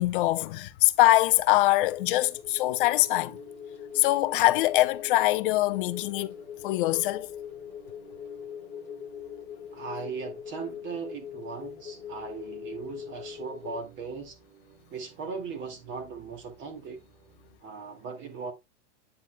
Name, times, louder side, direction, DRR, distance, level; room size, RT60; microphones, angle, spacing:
voice 1, 0.0-3.4 3.9-6.3 6.6-7.3, left 17 dB, 45° left, 0.8 m, -23 dB
sound 1, 1.6-17.6, right 6 dB, 50° right, 3.7 m, -56 dB
sound 2, 1.8-13.8, left 9 dB, 15° left, 0.5 m, -42 dB
voice 2, 9.7-14.4 14.9-17.0 17.6-18.5, right 5 dB, 35° right, 2.4 m, -38 dB
9.3 x 6.9 x 2.3 m
hypercardioid pair, 130°, 35 cm